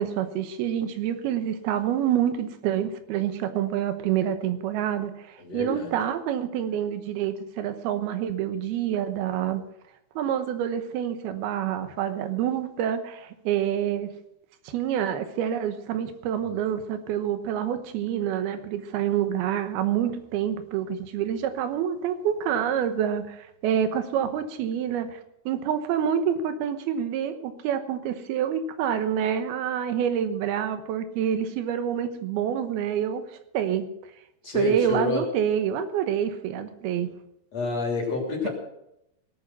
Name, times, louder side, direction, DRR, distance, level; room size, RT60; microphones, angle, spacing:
voice 1, 0.0-9.6 10.2-14.1 14.7-25.2 25.5-33.2 33.5-33.9 34.5-37.1, right 9 dB, 90° right, 9 dB, 3.1 m, -27 dB
voice 2, 5.4-5.9 16.4-16.6 34.4-35.2 37.5-38.5, left 1 dB, 45° left, 0 dB, 4.2 m, -28 dB
18.0 x 9.1 x 6.0 m, 0.83 s
omnidirectional pair, 4.3 m